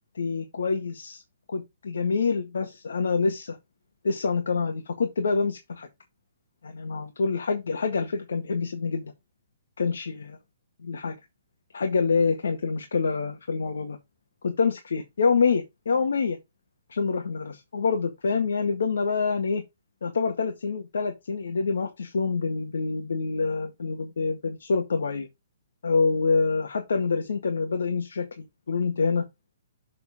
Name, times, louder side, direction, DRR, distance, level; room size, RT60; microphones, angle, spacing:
voice 1, 0.2-1.2 1.5-3.6 4.0-5.9 6.6-9.1 9.8-10.1 10.8-11.1 11.7-14.0 14.4-16.4 16.9-19.6 20.0-25.3 25.8-29.2, left 4 dB, 90° left, 1.8 m, -26 dB
6.9 x 6.8 x 3.6 m
hypercardioid pair, 165°, 0 cm